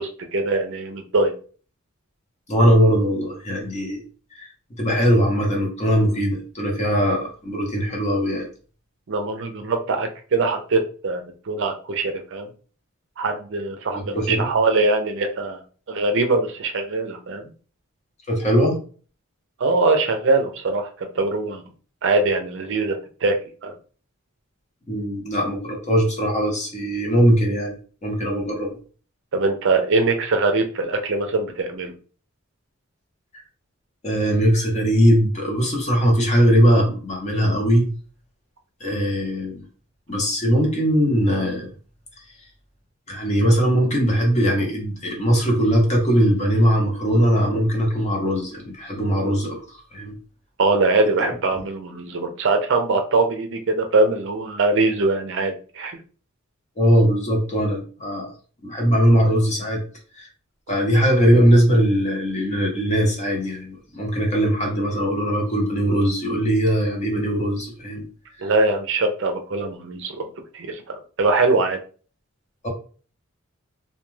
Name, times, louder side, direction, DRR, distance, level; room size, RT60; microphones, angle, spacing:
voice 1, 0.0-1.3 9.1-12.5 13.2-15.6 15.9-17.5 19.6-21.6 22.0-23.4 23.6-23.7 29.3-31.9 50.6-56.0 68.4-70.3 70.5-71.8, right 3 dB, 60° right, 5 dB, 0.5 m, -22 dB
voice 2, 2.5-4.0 4.3-4.5 4.8-8.5 13.9-14.5 18.3-18.8 24.9-27.7 28.0-28.8 34.0-37.9 38.8-39.6 40.1-41.7 43.1-49.6 49.9-50.1 56.8-58.3 58.6-59.8 60.2-60.3 60.7-68.0 72.6-72.7, equal, 35° left, 0 dB, 0.8 m, -20 dB
2.3 x 2.2 x 3.1 m, 0.40 s
head